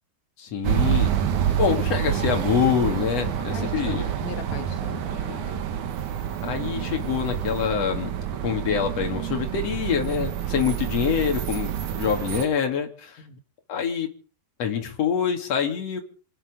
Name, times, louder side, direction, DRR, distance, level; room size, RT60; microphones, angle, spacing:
voice 1, 0.4-1.1 1.6-4.1 5.3-5.6 6.4-8.1 8.4-13.2 13.7-14.1 14.6-16.0, left 7 dB, 45° left, 3 dB, 2.9 m, -25 dB
sound 1, 0.6-12.5, right 10 dB, 65° right, 2.1 m, -27 dB
voice 2, 3.5-5.4 13.2-13.4, left 8 dB, 70° left, 5 dB, 1.7 m, -39 dB
27.5 x 10.5 x 5.1 m, 0.42 s
omnidirectional pair, 5.0 m